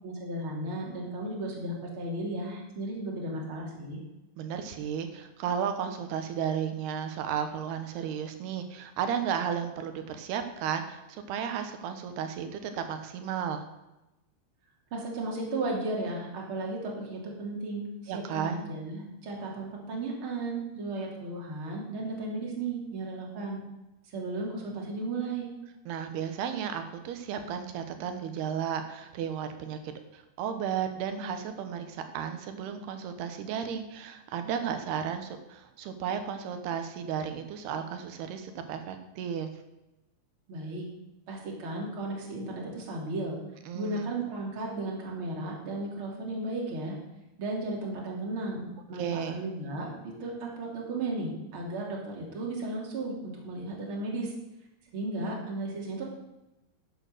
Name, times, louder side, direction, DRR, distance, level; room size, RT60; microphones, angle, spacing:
voice 1, 0.0-4.0 14.9-23.6 24.0-25.5 40.5-40.8 41.3-43.4 43.7-47.0 47.4-54.3 54.9-56.0, right 2 dB, 35° right, -2 dB, 3.3 m, -35 dB
voice 2, 4.4-13.6 18.1-18.7 25.9-39.5 43.7-44.1 48.9-49.4, right 8 dB, 80° right, 8 dB, 3.1 m, -34 dB
11.5 x 8.4 x 6.6 m, 0.96 s
omnidirectional pair, 4.7 m